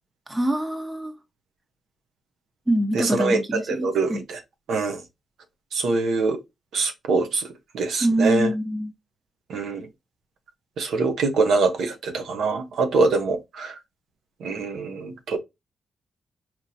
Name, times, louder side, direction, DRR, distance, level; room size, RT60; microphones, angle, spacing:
voice 1, 0.3-1.1 2.7-4.2 8.0-8.9, right 1 dB, 15° right, 0.9 m, -24 dB
voice 2, 2.9-4.4 4.7-5.0 5.7-6.4 6.7-7.5 7.7-8.5 9.5-9.9 10.8-13.8 14.4-15.4, right 3 dB, 80° right, 0.8 m, -24 dB
4.2 x 3.0 x 2.6 m
cardioid pair, 100°, 0 cm